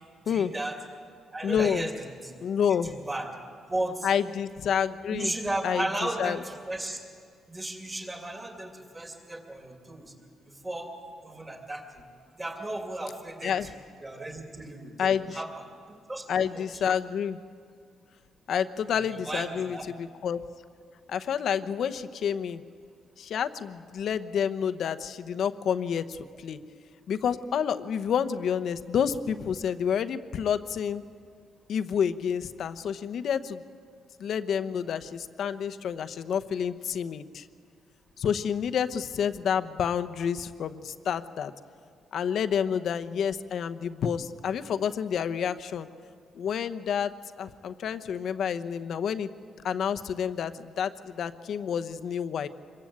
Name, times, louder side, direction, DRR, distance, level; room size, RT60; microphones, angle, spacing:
voice 1, 0.2-0.8 1.3-2.4 2.7-3.3 3.7-4.1 5.1-7.0 7.5-10.1 10.4-10.9 11.2-13.7 14.0-15.7 16.1-16.8 18.9-19.9 35.4-35.5, right 1 dB, 15° right, 4 dB, 2.6 m, -35 dB
voice 2, 1.4-1.9 2.4-2.9 4.0-5.3 5.6-5.8 6.2-6.4 13.4-13.6 15.0-15.4 16.3-17.4 18.5-20.4 21.1-22.6 23.2-26.6 27.1-31.0 31.7-33.6 34.2-37.4 38.2-41.5 42.1-45.9 46.4-47.1 47.4-49.3 49.6-52.5, left 8 dB, 55° left, 10 dB, 0.9 m, -29 dB
26.0 x 22.0 x 8.7 m, 2.1 s
cardioid pair, 160°, 0 cm